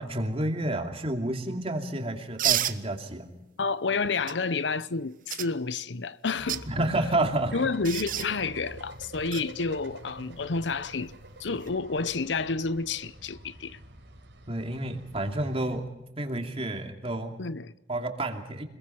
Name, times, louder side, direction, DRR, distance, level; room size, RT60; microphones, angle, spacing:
voice 1, 0.0-3.3 6.7-7.6 14.5-15.9 16.2-17.4 17.9-18.7, right 1 dB, 35° right, 2.7 m, -30 dB
sound 1, 2.4-2.8 4.3-4.4 5.3-5.5 6.3-6.6 7.8-8.3 9.3-9.4 11.5-11.7, right 12 dB, 50° right, 0.9 m, -28 dB
voice 2, 3.6-6.7 7.5-11.1 11.4-13.8 17.4-17.7, left 4 dB, 90° left, 0.8 m, -30 dB
sound 2, 6.4-15.8, right 1 dB, 85° right, 4.8 m, -47 dB
26.0 x 22.0 x 5.9 m
head